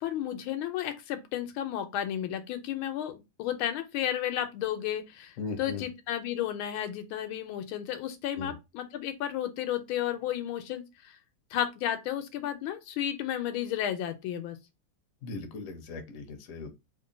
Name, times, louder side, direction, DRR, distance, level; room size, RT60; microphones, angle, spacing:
voice 1, 0.0-11.2 11.5-14.6, left 11 dB, 90° left, 1.5 m, -33 dB
voice 2, 5.4-5.8 8.4-8.5 15.2-16.8, left 4 dB, 60° left, 0.8 m, -38 dB
3.6 x 2.2 x 3.7 m
omnidirectional pair, 2.2 m